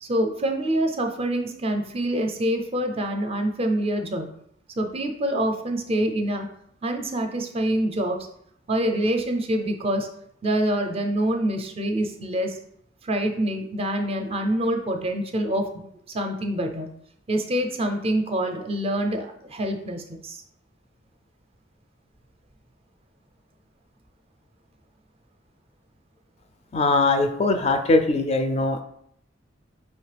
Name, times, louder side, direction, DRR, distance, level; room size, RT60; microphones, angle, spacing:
voice 1, 0.0-4.3 4.8-6.5 6.8-8.2 8.7-10.1 10.4-12.6 13.0-16.9 17.3-20.4, right 1 dB, 30° right, 5 dB, 0.5 m, -26 dB
voice 2, 26.7-28.8, left 2 dB, 35° left, 6 dB, 0.4 m, -21 dB
5.0 x 3.0 x 3.3 m, 0.72 s
head